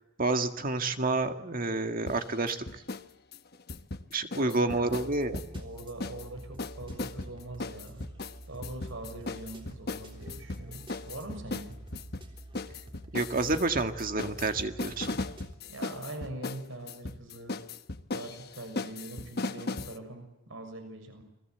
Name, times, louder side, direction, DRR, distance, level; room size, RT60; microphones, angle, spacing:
voice 1, 0.2-2.7 4.1-5.4 13.1-15.2, right 2 dB, 45° right, 7 dB, 1.8 m, -29 dB
sound 1, 2.1-3.1 3.3-6.3 6.6-20.0, left 3 dB, 50° left, 1.2 m, -38 dB
voice 2, 4.3-5.1 5.5-8.1 8.5-11.8 15.6-17.6 18.1-21.2, right 2 dB, 70° right, 6 dB, 6.5 m, -43 dB
sound 2, 4.9-15.5, right 1 dB, 25° right, 3.6 m, -48 dB
29.5 x 21.5 x 8.0 m, 0.92 s
head